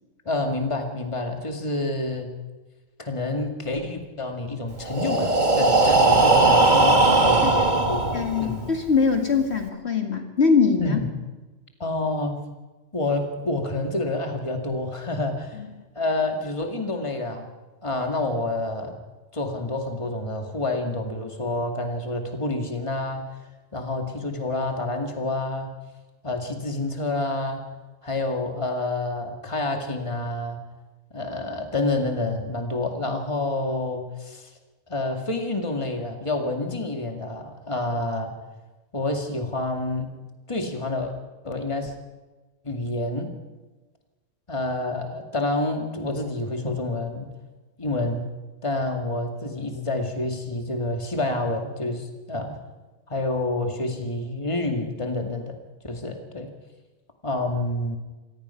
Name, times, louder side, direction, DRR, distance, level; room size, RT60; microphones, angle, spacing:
voice 1, 0.3-2.3 3.0-8.0 8.4-8.7 10.8-11.1 11.8-12.4 12.9-15.6 15.9-17.5 17.8-18.9 19.3-23.3 23.7-25.7 26.2-27.6 28.0-30.6 31.1-34.5 34.9-38.3 38.9-40.1 40.5-41.1 41.4-41.9 42.6-43.3 44.5-47.3 47.8-48.2 48.6-52.6 53.1-55.6 55.8-56.5 57.2-58.0, left 2 dB, 25° left, 3 dB, 2.2 m, -28 dB
Breathing, 4.8-8.7, right 2 dB, 35° right, 1.9 m, -19 dB
voice 2, 8.1-11.0 15.6-15.7, left 5 dB, 55° left, 4 dB, 2.3 m, -22 dB
25.5 x 18.0 x 5.8 m, 1.2 s
omnidirectional pair, 1.3 m